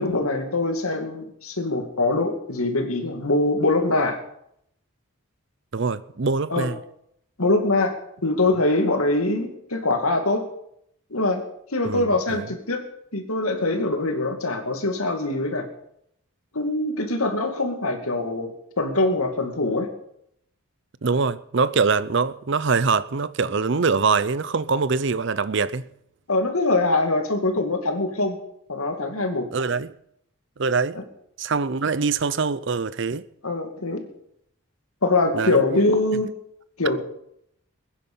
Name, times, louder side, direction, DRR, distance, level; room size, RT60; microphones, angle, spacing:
voice 1, 0.0-4.2 6.5-6.7 7.4-7.9 8.2-10.4 11.1-11.4 11.7-12.8 13.1-15.6 16.5-18.5 18.8-19.9 26.3-28.4 28.7-29.5 30.9-31.0 33.4-34.0 35.0-36.3 36.8-37.0, left 2 dB, 80° left, 2.5 m, -23 dB
voice 2, 5.7-6.8 11.8-12.4 21.0-25.8 29.5-29.9 30.6-31.0 31.4-33.3 35.3-35.6, right 4 dB, 55° right, 0.6 m, -23 dB
21.5 x 10.0 x 5.6 m
head